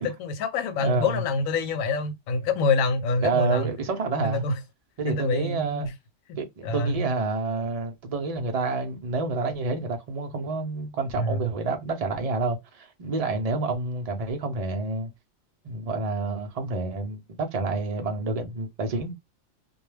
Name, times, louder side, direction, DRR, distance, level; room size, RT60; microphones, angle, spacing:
voice 1, 0.2-3.7 4.2-4.6 5.0-5.9 6.6-7.0 11.2-11.5, left 3 dB, 85° left, 1.0 m, -26 dB
voice 2, 0.8-1.2 3.2-4.4 5.0-5.9 6.4-15.1 15.6-19.1, right 3 dB, 45° right, 0.5 m, -28 dB
2.2 x 2.2 x 3.2 m
omnidirectional pair, 1.4 m